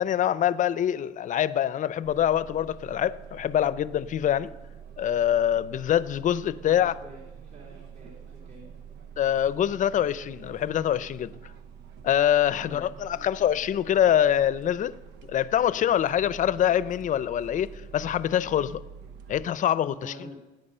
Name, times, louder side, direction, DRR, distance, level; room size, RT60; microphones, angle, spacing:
voice 1, 0.0-4.5 5.0-6.9 9.2-11.3 12.0-15.0 15.3-18.8 19.3-20.1, left 10 dB, 50° left, 0.6 m, -24 dB
sound 1, 2.0-19.5, right 6 dB, 80° right, 1.0 m, -46 dB
voice 2, 6.6-8.7 12.5-13.3 19.9-20.4, right 1 dB, 45° right, 3.4 m, -47 dB
19.0 x 9.2 x 5.6 m
cardioid pair, 110°, 17 cm